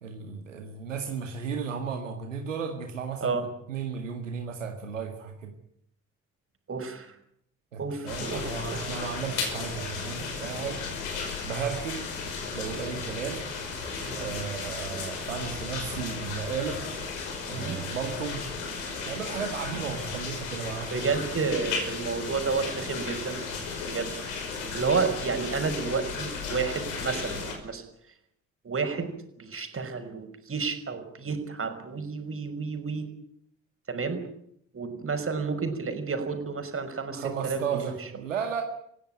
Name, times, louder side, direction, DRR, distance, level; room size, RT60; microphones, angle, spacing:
voice 1, 0.0-3.4 3.7-5.5 7.7-10.8 11.4-12.1 12.5-13.5 14.1-16.8 17.5-18.4 19.0-21.2 25.0-25.1 37.1-38.6, right 6 dB, 90° right, 4 dB, 1.9 m, -34 dB
voice 2, 6.7-7.1 7.8-8.9 14.0-14.2 17.5-17.8 20.9-23.5 23.9-24.1 24.7-27.8 28.6-29.1 29.4-33.1 33.9-34.2 34.7-37.9, right 4 dB, 35° right, 6 dB, 5.8 m, -31 dB
sound 1, 8.1-27.5, left 4 dB, 80° left, 5.5 m, -35 dB
27.5 x 16.5 x 9.1 m, 0.71 s
hypercardioid pair, 50°, 37 cm